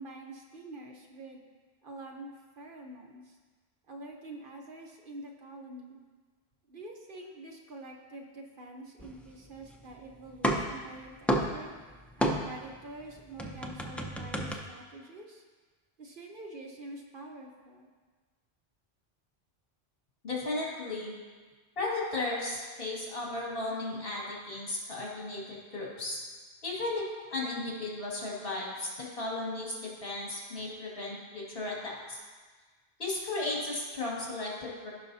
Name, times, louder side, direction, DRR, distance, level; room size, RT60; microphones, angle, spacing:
voice 1, 0.0-1.4 1.8-2.3 2.6-3.3 3.9-6.0 6.7-11.7 12.2-15.4 16.0-17.9, right 2 dB, 55° right, 2 dB, 1.0 m, -46 dB
sound 1, 9.0-9.9 10.2-12.8 13.0-14.5, equal, ahead, 0.4 m, -31 dB
voice 2, 20.2-21.1 21.8-26.2 26.6-29.7 30.0-32.2 33.0-34.9, left 2 dB, 60° left, -5 dB, 2.3 m, -35 dB
16.0 x 5.5 x 2.7 m, 1.4 s
omnidirectional pair, 1.1 m